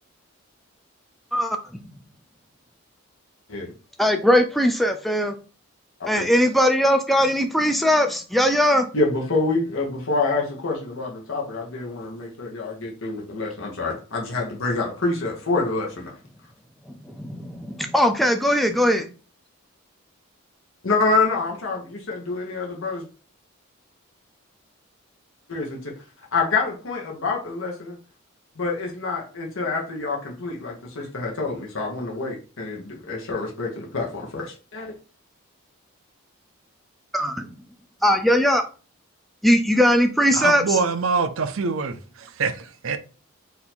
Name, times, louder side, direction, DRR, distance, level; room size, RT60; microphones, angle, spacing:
voice 1, 4.0-5.3 6.1-8.9 17.0-19.1 37.1-37.5 38.0-38.6 39.4-40.8, equal, ahead, 0.4 m, -20 dB
voice 2, 8.9-16.0 20.8-23.1 25.5-25.9 26.3-28.0 28.6-34.9, left 3 dB, 75° left, 1.1 m, -26 dB
voice 3, 40.3-43.0, right 5 dB, 75° right, 0.5 m, -25 dB
4.1 x 2.7 x 4.3 m
head